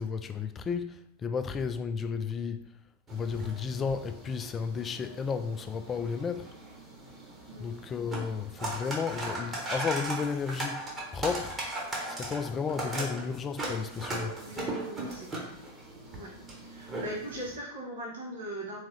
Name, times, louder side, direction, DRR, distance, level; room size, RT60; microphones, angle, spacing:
voice 1, 0.0-2.6 3.1-6.5 7.6-10.9 11.1-11.6 12.1-14.3, left 5 dB, 25° left, 0.4 m, -33 dB
sound 1, 3.1-17.5, right 1 dB, 20° right, 1.2 m, -38 dB
voice 2, 14.4-15.5 16.1-16.3 16.6-18.8, right 1 dB, 65° right, 1.0 m, -40 dB
3.5 x 3.4 x 3.3 m
figure-of-eight pair, 90°, 0 cm